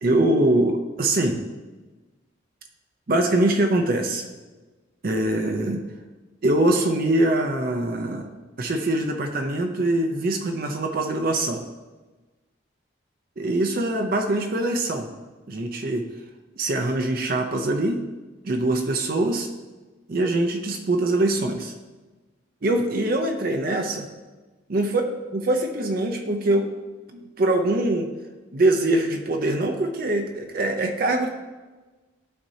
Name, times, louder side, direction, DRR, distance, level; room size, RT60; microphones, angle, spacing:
voice 1, 0.0-1.4 3.1-4.2 5.0-5.8 6.4-8.3 8.6-11.6 13.4-15.1 15.5-16.1 16.6-18.0 18.4-19.5 20.1-21.7 22.6-24.1 24.7-25.0 25.3-26.7 27.1-28.1 28.5-31.3, right 1 dB, 50° right, 4 dB, 0.6 m, -23 dB
12.0 x 4.3 x 2.7 m, 1.2 s
head